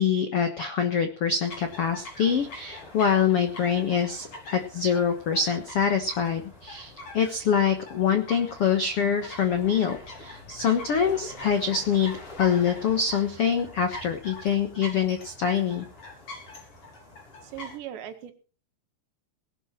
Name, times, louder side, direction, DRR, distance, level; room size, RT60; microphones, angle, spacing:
voice 1, 0.0-15.9, left 7 dB, 90° left, 7 dB, 1.3 m, -25 dB
sound 1, 1.4-17.8, left 2 dB, 35° left, 4.4 m, -43 dB
voice 2, 17.4-18.3, right 11 dB, 90° right, 8 dB, 4.1 m, -39 dB
19.0 x 12.0 x 4.4 m, 0.36 s
omnidirectional pair, 4.9 m